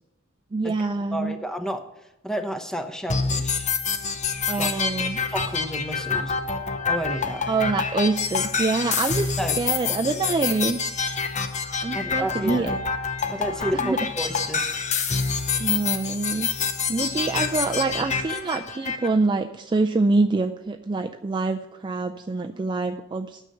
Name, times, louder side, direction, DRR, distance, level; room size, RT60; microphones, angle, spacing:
voice 1, 0.5-1.3 4.5-5.2 7.5-10.8 11.8-12.8 13.7-14.0 15.6-16.5 16.9-23.4, right 3 dB, 20° right, 6 dB, 0.3 m, -25 dB
voice 2, 1.1-1.9 2.2-3.7 4.6-4.7 5.3-6.3 6.9-7.5 9.4-10.0 11.9-12.7 13.3-14.7, equal, 5° left, 7 dB, 0.8 m, -31 dB
sound 1, 3.1-19.1, left 5 dB, 35° left, 0.7 m, -27 dB
sound 2, 8.9-9.7 11.1-12.1 13.2-14.2 15.2-16.2 17.3-17.9 20.6-20.7, left 3 dB, 55° left, 2.5 m, -47 dB
9.4 x 6.6 x 7.7 m, 0.91 s
head